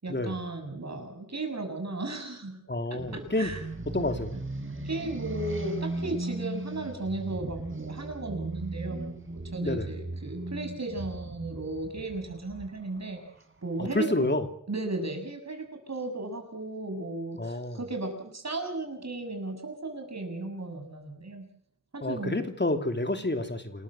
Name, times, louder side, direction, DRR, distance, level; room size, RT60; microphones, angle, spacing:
voice 1, 0.0-2.6 2.9-3.6 4.8-13.2 13.6-14.1 14.7-21.4 21.9-22.4, right 2 dB, 65° right, 5 dB, 7.0 m, -35 dB
voice 2, 2.7-3.5 3.8-4.4 9.6-9.9 13.8-14.5 17.4-17.8 22.0-23.8, left 2 dB, 40° left, 6 dB, 2.9 m, -29 dB
sound 1, 3.0-13.7, right 2 dB, 45° right, 4.3 m, -37 dB
28.0 x 14.0 x 7.7 m, 0.65 s
cardioid pair, 50°, 29 cm